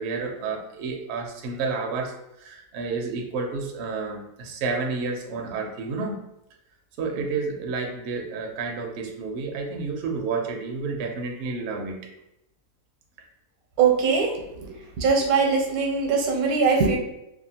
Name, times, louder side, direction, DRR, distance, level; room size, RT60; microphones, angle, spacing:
voice 1, 0.0-6.2 7.0-12.0, right 4 dB, 65° right, 1 dB, 0.6 m, -30 dB
voice 2, 13.8-14.3 14.6-14.7 15.0-17.0, right 5 dB, 80° right, 1 dB, 1.1 m, -21 dB
2.7 x 2.3 x 2.7 m, 0.85 s
omnidirectional pair, 1.5 m